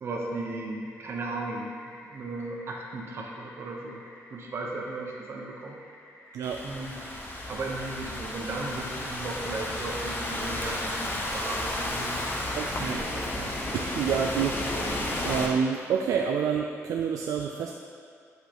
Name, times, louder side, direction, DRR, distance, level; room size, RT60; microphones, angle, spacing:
voice 1, 0.0-4.0 4.3-5.8 6.6-7.1 7.5-12.7, right 2 dB, 45° right, 0 dB, 0.9 m, -36 dB
sound 1, 0.8-15.5, left 1 dB, 55° left, 1.3 m, -50 dB
voice 2, 6.3-6.6 12.5-17.7, right 7 dB, 85° right, 2 dB, 0.3 m, -29 dB
Thunderstorm / Rain, 6.4-15.5, left 1 dB, 35° left, 0.8 m, -32 dB
7.8 x 5.0 x 3.0 m, 2.3 s
wide cardioid pair, 150°, 6 cm